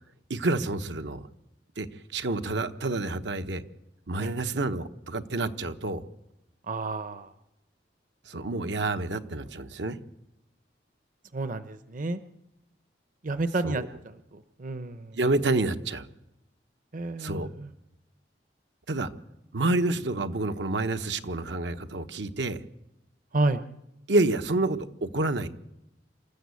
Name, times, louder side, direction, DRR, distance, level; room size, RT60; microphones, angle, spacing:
voice 1, 0.3-1.2 1.8-3.6 4.1-6.0 8.3-10.0 13.6-13.9 15.1-16.1 17.2-17.5 18.9-19.1 19.5-22.6 24.1-25.5, right 2 dB, 80° right, 9 dB, 1.1 m, -28 dB
voice 2, 6.7-7.3 11.3-12.2 13.2-15.2 16.9-17.7 23.3-23.6, right 2 dB, 50° right, 12 dB, 0.8 m, -30 dB
27.0 x 13.0 x 8.4 m, 0.90 s
head